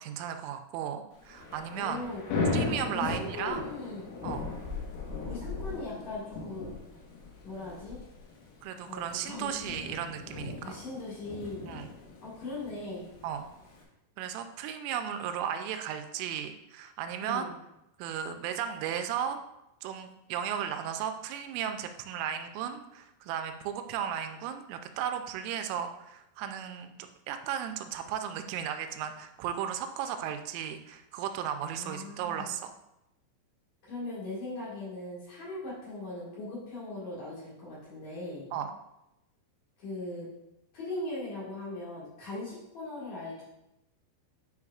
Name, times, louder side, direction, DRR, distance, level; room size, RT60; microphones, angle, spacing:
voice 1, 0.0-2.0 2.5-3.6 4.2-4.5 8.6-10.8 11.7-11.9 13.2-13.5 14.2-17.5 18.0-19.4 19.8-32.7 38.5-38.7, right 9 dB, 85° right, 7 dB, 3.0 m, -35 dB
Thunder / Rain, 1.2-13.8, left 3 dB, 75° left, 3.6 m, -37 dB
voice 2, 1.7-2.2 2.9-4.2 5.2-6.7 7.4-8.0 8.8-9.5 10.6-11.7 12.2-13.1 17.2-17.5 31.7-32.5 33.8-38.5 39.8-40.3 40.7-43.4, left 2 dB, 50° left, -8 dB, 2.4 m, -39 dB
9.5 x 5.2 x 2.4 m, 0.88 s
omnidirectional pair, 5.7 m